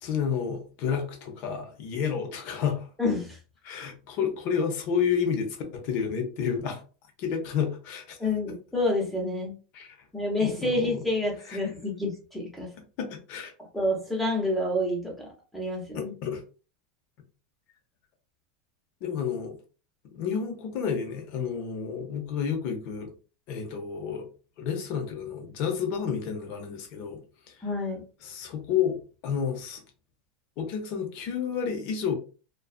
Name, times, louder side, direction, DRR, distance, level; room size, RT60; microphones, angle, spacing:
voice 1, 0.0-2.9 3.6-6.8 7.2-8.2 9.7-10.0 10.4-11.0 11.5-11.6 13.0-13.5 15.9-16.4 19.0-19.6 20.1-23.1 23.5-24.3 24.6-27.2 27.5-27.6 28.2-29.8 30.6-32.1, left 7 dB, 45° left, 0.7 m, -30 dB
voice 2, 3.0-3.4 8.2-9.5 10.1-12.7 13.7-15.3 15.5-16.1 27.6-28.0, left 1 dB, 5° left, 0.8 m, -28 dB
2.5 x 2.3 x 2.3 m
supercardioid pair, 155°, 4 cm